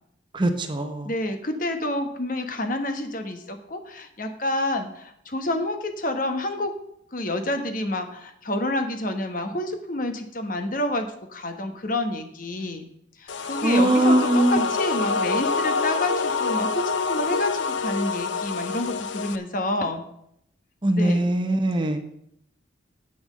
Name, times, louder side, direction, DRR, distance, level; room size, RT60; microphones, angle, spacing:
voice 1, 0.3-1.1 13.6-14.6 20.8-22.0, right 1 dB, 25° right, 6 dB, 0.9 m, -21 dB
voice 2, 1.0-6.7 7.1-12.9 13.2-20.0 20.9-21.3, left 1 dB, 45° left, 7 dB, 1.2 m, -28 dB
sound 1, 13.3-19.4, left 4 dB, 75° left, 0.6 m, -26 dB
8.8 x 6.0 x 7.3 m, 0.73 s
head